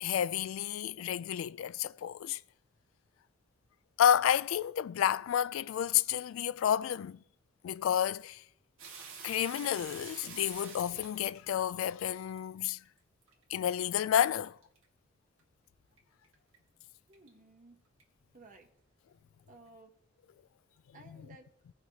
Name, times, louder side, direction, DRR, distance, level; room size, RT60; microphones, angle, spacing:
voice 1, 0.0-2.4 4.0-7.2 7.6-8.4 9.2-12.8 13.5-14.6, left 10 dB, 85° left, 0.3 m, -30 dB
sound 1, 8.8-12.4 13.0-13.3 13.7-13.8 14.3-14.8 15.4-15.5 16.0-16.1 16.2-16.6 17.1-17.3 18.0-18.1, right 5 dB, 85° right, 2.0 m, -48 dB
voice 2, 17.1-17.8 18.3-18.7 19.5-19.9 20.9-21.5, right 3 dB, 40° right, 0.9 m, -56 dB
17.5 x 5.9 x 2.8 m
head